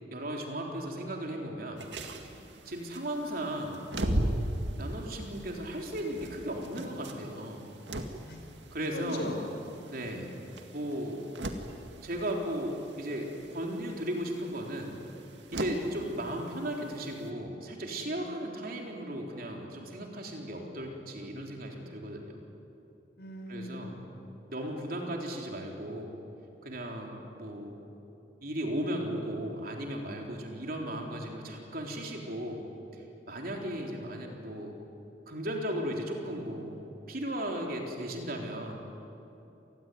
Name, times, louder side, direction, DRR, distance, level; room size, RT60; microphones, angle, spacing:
voice 1, 0.1-1.9 2.2-2.4 2.7-4.5 4.8-7.7 8.7-9.3 9.9-10.3 10.7-11.3 12.0-15.0 15.5-22.4 23.5-24.0 24.5-26.2 26.6-27.8 28.4-32.7 32.9-34.8 35.3-36.8 37.1-38.7, right 1 dB, 50° right, 1 dB, 4.0 m, -36 dB
sound 1, 1.8-17.3, right 1 dB, 75° right, 2.1 m, -39 dB
voice 2, 8.9-9.5 10.0-10.4 15.6-15.9 18.2-18.5 23.2-24.4, left 1 dB, 60° left, 3 dB, 5.1 m, -41 dB
27.5 x 20.0 x 9.4 m, 2.9 s
head